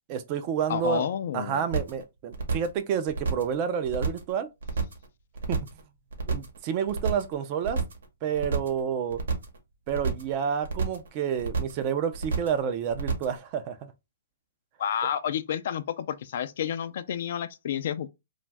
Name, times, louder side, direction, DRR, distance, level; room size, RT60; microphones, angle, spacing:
voice 1, 0.1-1.1 1.3-4.5 5.5-5.6 6.3-7.8 8.2-9.2 9.9-13.9, right 8 dB, 35° right, 0.4 m, -29 dB
voice 2, 0.7-1.6 14.8-18.1, left 9 dB, 60° left, 0.3 m, -30 dB
sound 1, 1.7-2.0 2.3-2.8 3.1-3.5 3.8-4.3 4.6-5.0 5.3-5.8 6.1-6.6 6.9-7.3 7.6-8.0 8.3-8.8 9.1-9.6 9.9-10.3 10.6-11.1 11.4-11.8 12.1-12.6 12.9-13.4, right 4 dB, 80° right, 0.9 m, -29 dB
2.5 x 2.3 x 3.2 m
hypercardioid pair, 145°, 0 cm